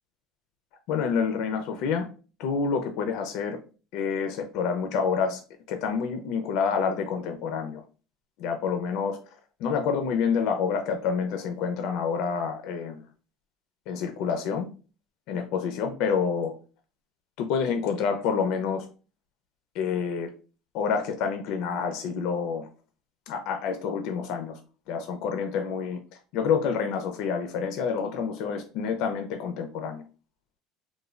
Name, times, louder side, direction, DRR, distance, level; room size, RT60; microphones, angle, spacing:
voice 1, 0.9-2.1 2.4-3.6 3.9-5.4 5.7-7.8 8.4-9.2 9.6-13.0 13.9-14.7 15.3-16.5 17.4-18.9 19.7-20.3 20.7-22.7 23.3-24.6 24.9-26.0 26.3-30.0, left 6 dB, 65° left, 6 dB, 0.4 m, -28 dB
3.0 x 2.1 x 2.3 m, 0.36 s
cardioid pair, 150°, 0 cm